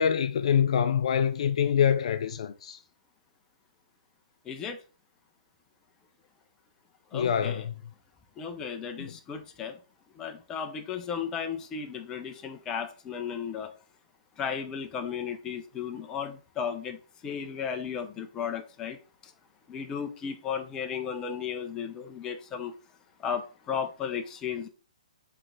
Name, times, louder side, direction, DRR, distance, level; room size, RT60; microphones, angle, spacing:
voice 1, 0.0-2.8 7.1-7.7 9.0-9.2, left 8 dB, 60° left, 0.6 m, -25 dB
voice 2, 4.5-4.8 7.1-7.6 8.4-9.8 10.2-13.7 14.4-17.0 17.2-19.0 19.7-22.7 23.2-24.7, left 7 dB, 20° left, 0.8 m, -34 dB
7.4 x 3.4 x 3.7 m
hypercardioid pair, 135°, 4 cm